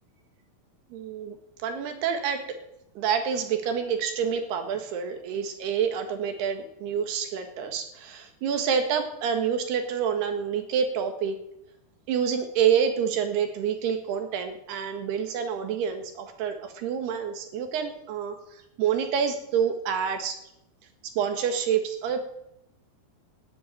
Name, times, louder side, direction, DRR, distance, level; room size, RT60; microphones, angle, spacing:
voice 1, 0.9-1.4 1.6-2.6 3.0-11.4 12.1-18.4 18.8-20.4 21.0-22.2, right 7 dB, 85° right, 7 dB, 3.8 m, -27 dB
13.0 x 10.5 x 9.2 m, 0.79 s
omnidirectional pair, 4.6 m